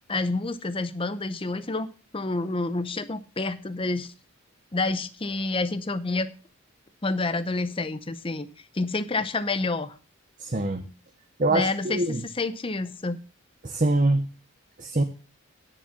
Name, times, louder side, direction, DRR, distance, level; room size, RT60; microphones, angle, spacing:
voice 1, 0.1-4.1 4.7-6.3 7.0-8.5 8.7-9.9 11.5-12.0 12.4-13.2, left 3 dB, 25° left, 13 dB, 0.6 m, -28 dB
voice 2, 10.4-10.9 11.4-12.2 13.6-14.2 14.8-15.0, right 2 dB, 35° right, 7 dB, 0.8 m, -24 dB
9.9 x 7.3 x 5.7 m, 0.35 s
head